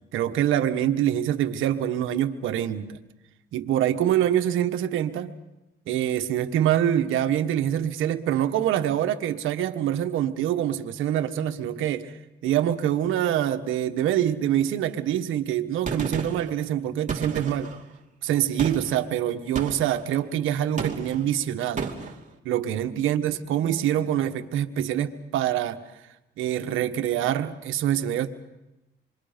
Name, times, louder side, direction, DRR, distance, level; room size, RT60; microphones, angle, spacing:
voice 1, 0.1-3.0 3.5-5.3 5.9-17.7 18.2-21.9 22.4-25.8 26.4-28.3, right 11 dB, 90° right, 1.3 m, -25 dB
Gunshot gunfire, 15.9-16.5 17.1-17.8 18.6-19.0 19.6-20.0 20.8-21.3 21.8-22.2, right 5 dB, 40° right, 2.7 m, -32 dB
27.5 x 24.0 x 5.2 m
cardioid pair, 90°, 20 cm